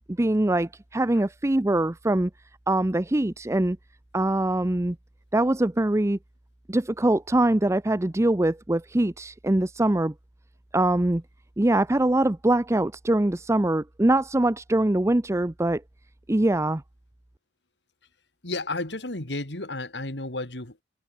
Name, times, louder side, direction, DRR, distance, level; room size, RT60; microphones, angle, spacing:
voice 1, 0.2-2.3 2.7-3.8 4.1-5.0 5.3-6.2 6.7-10.1 10.7-11.2 11.6-15.8 16.3-16.8, right 1 dB, 15° right, 0.6 m, -23 dB
voice 2, 18.4-20.8, left 2 dB, 80° left, 3.3 m, -32 dB
head